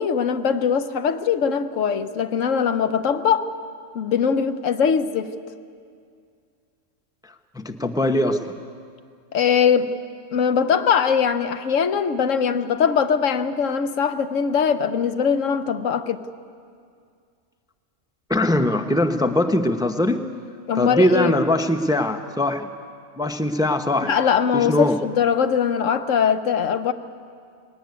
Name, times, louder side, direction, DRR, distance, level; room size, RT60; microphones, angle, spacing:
voice 1, 0.0-3.5 3.9-5.3 9.3-9.9 10.3-16.2 20.7-21.3 24.0-26.9, left 7 dB, 90° left, 10 dB, 1.2 m, -21 dB
voice 2, 7.2-8.5 18.3-20.2 20.7-22.7 23.2-24.1 24.5-25.0, left 1 dB, 5° right, 7 dB, 0.6 m, -21 dB
20.0 x 17.5 x 9.5 m, 2.3 s
omnidirectional pair, 1.3 m